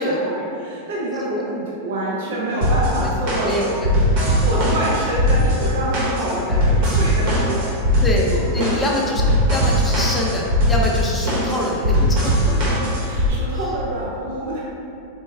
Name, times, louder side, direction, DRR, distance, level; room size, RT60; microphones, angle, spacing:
voice 1, 0.0-3.8 4.4-8.0 8.3-8.8 11.2-11.5 12.4-14.7, right 1 dB, 75° right, -5 dB, 0.7 m, -27 dB
sound 1, 2.6-13.3, equal, 50° right, 1.2 m, -19 dB
voice 2, 3.0-3.9 6.3-6.6 8.0-8.3 8.5-12.2 12.5-12.6, left 1 dB, 10° left, -3 dB, 0.5 m, -25 dB
4.3 x 2.2 x 3.3 m, 2.6 s
supercardioid pair, 145°, 0 cm